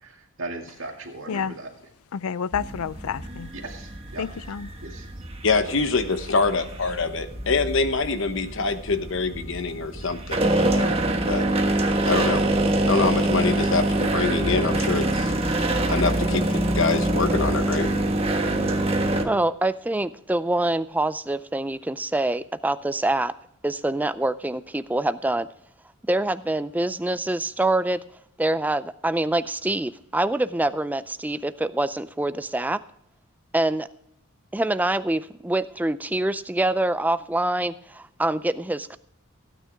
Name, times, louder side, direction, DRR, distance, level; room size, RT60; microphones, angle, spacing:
voice 1, 0.0-1.7 3.5-4.4 4.8-5.1 5.5-5.8, right 2 dB, 65° right, 2.2 m, -38 dB
voice 2, 2.1-3.5 4.2-4.7, left 7 dB, 85° left, 0.4 m, -29 dB
sound 1, 2.5-19.3, right 1 dB, 25° right, 1.3 m, -25 dB
voice 3, 5.4-10.9 11.3-11.5 12.0-12.4 12.9-15.3 15.9-17.9, left 4 dB, 60° left, 1.0 m, -25 dB
voice 4, 19.2-23.3 23.6-25.5 26.1-28.0 28.4-32.8 33.5-33.9 34.5-39.0, right 1 dB, 10° right, 0.4 m, -25 dB
16.5 x 9.2 x 3.5 m
head